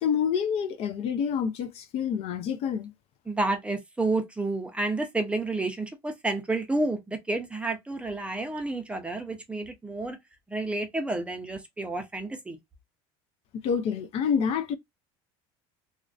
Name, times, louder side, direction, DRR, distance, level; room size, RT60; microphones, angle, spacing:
voice 1, 0.0-2.9 13.5-14.8, left 7 dB, 50° left, 0.4 m, -27 dB
voice 2, 3.3-10.2 10.5-12.6, right 2 dB, 10° right, 0.5 m, -30 dB
2.5 x 2.1 x 2.3 m
cardioid pair, 135°, 13 cm